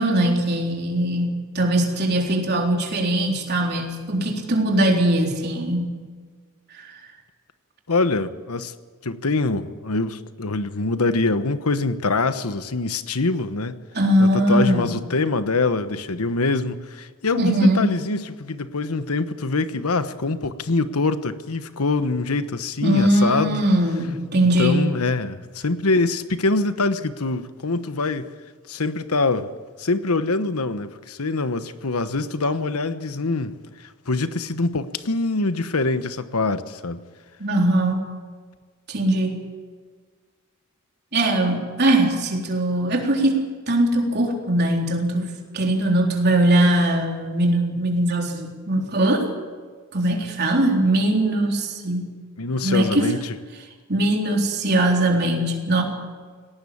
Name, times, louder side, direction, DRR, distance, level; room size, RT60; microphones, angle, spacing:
voice 1, 0.0-6.0 6.7-6.9 13.9-15.0 17.4-17.9 22.8-24.9 37.4-38.1 38.9-39.4 41.1-49.3 49.9-52.1 52.6-53.1 53.9-55.8, right 1 dB, 50° right, 3.9 m, -21 dB
voice 2, 7.9-8.7 9.0-13.8 14.2-23.6 24.4-28.3 28.7-29.5 29.8-37.0 52.4-53.3, left 3 dB, 85° left, 1.2 m, -24 dB
19.0 x 18.0 x 8.7 m
head